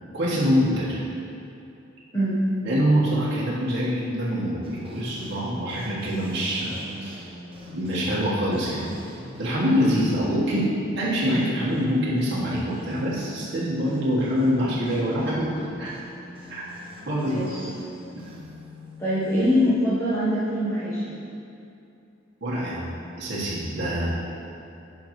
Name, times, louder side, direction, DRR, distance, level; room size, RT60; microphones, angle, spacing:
voice 1, 0.1-1.0 2.6-7.3 7.7-8.9 9.4-10.7 11.0-15.5 15.8-15.9 16.5-16.7 17.1-17.4 22.4-22.9 23.2-24.1, equal, 60° right, -8 dB, 1.5 m, -25 dB
voice 2, 2.1-2.4 17.2-17.6 19.0-21.2, equal, 15° left, -12 dB, 1.1 m, -23 dB
sound 1, 4.6-19.7, equal, 30° right, 0.9 m, -44 dB
10.0 x 5.2 x 3.2 m, 2.7 s
head